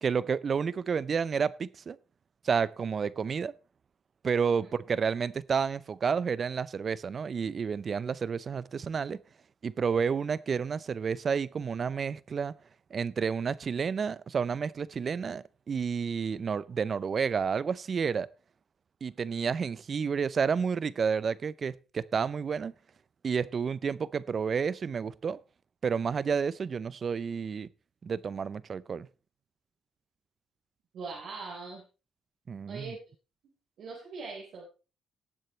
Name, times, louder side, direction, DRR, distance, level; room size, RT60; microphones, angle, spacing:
voice 1, 0.0-2.0 2.4-3.5 4.2-9.2 9.6-12.5 12.9-18.3 19.0-22.7 23.2-25.4 25.8-27.7 28.0-29.1 32.5-33.0, right 6 dB, 45° right, 0.6 m, -30 dB
voice 2, 30.9-31.9 32.7-33.0 33.8-34.6, right 4 dB, 70° right, 4.2 m, -41 dB
19.0 x 7.8 x 3.2 m
cardioid pair, 90°, 0 cm